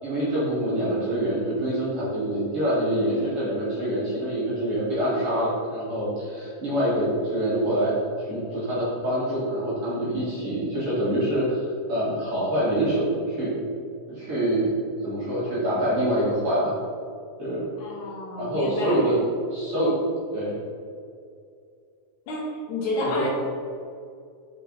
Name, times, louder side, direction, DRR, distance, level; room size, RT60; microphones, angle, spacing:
voice 1, 0.0-8.0 8.3-11.6 11.9-13.6 14.1-14.7 15.0-16.7 17.4-17.7 18.4-19.2 19.5-20.0 20.3-20.6 23.0-23.3, right 1 dB, 50° right, -9 dB, 2.2 m, -25 dB
voice 2, 17.8-19.0 22.3-23.3, left 2 dB, 70° left, -4 dB, 2.5 m, -30 dB
5.6 x 5.3 x 3.9 m, 2.4 s
omnidirectional pair, 3.8 m